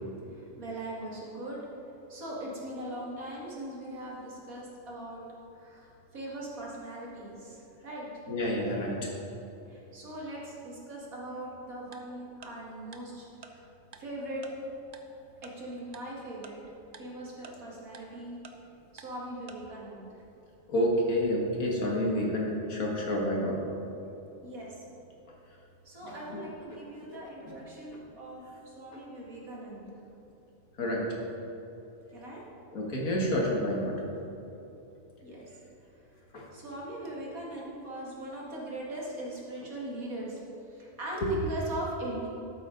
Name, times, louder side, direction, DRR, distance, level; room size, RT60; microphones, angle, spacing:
voice 1, 0.3-1.6 2.1-5.2 5.5-8.3 9.7-13.6 14.0-14.4 15.4-16.6 17.0-18.4 18.9-20.2 24.4-24.7 25.8-29.9 32.1-32.4 35.2-35.5 35.9-36.1 36.5-40.4 40.7-42.3, right 1 dB, 80° right, -4 dB, 2.6 m, -40 dB
voice 2, 8.3-9.1 20.7-23.6 26.1-26.4 28.9-29.0 30.8-31.1 32.7-33.9 36.3-36.5 41.2-41.3, equal, 75° left, -2 dB, 2.1 m, -29 dB
Tick-tock, 11.9-12.0 12.4-12.5 12.9-13.0 13.4-13.5 13.9-14.0 14.4-14.5 14.9-15.0 15.4-15.5 15.9-16.0 16.4-16.5 16.9-17.0 17.4-17.5 17.9-18.0 18.4-18.5 19.0-19.1 19.5-19.6, right 6 dB, 45° right, 0.5 m, -47 dB
12.5 x 8.6 x 3.9 m, 2.9 s
omnidirectional pair, 1.5 m